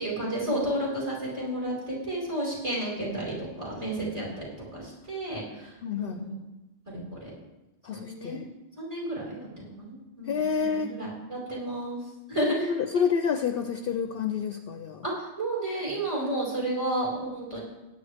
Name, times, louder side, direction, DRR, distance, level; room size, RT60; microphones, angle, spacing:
voice 1, 0.0-4.4 4.7-6.4 6.9-7.3 7.9-8.4 8.8-12.0 12.3-12.7 15.0-17.6, right 1 dB, 30° right, -5 dB, 5.1 m, -32 dB
voice 2, 5.8-6.2 7.8-8.5 10.3-11.0 12.4-15.1, left 6 dB, 60° left, 7 dB, 0.7 m, -28 dB
17.5 x 9.7 x 3.5 m, 1.0 s
omnidirectional pair, 1.2 m